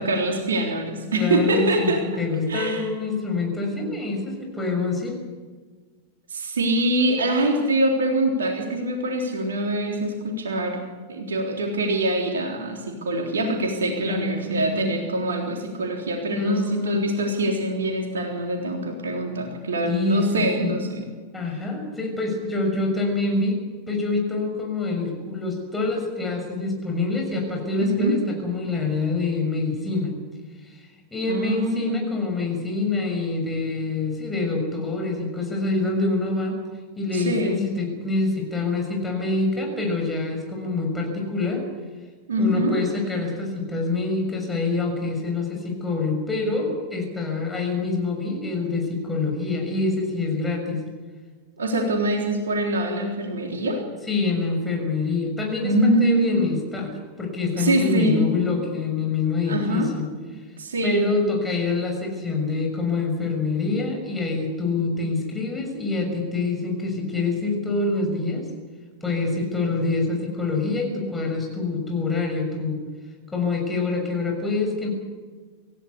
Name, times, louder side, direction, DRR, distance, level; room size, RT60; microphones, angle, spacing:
voice 1, 0.0-2.0 2.5-2.8 6.3-10.8 11.1-21.1 27.8-28.2 31.3-32.1 37.1-37.6 42.3-42.8 51.6-53.8 55.6-56.5 57.6-58.2 59.5-59.9 60.6-61.1, right 1 dB, 70° right, 1 dB, 3.6 m, -24 dB
voice 2, 1.1-5.2 14.0-14.9 16.4-17.0 19.9-20.7 21.3-23.6 23.9-30.1 30.6-30.8 31.1-36.6 37.0-41.6 42.4-50.8 54.1-56.9 57.2-60.0 60.8-68.6 69.0-72.8 73.3-74.9, left 3 dB, 10° left, 1 dB, 6.7 m, -26 dB
27.5 x 15.5 x 8.3 m, 1.4 s
figure-of-eight pair, 90°, 0 cm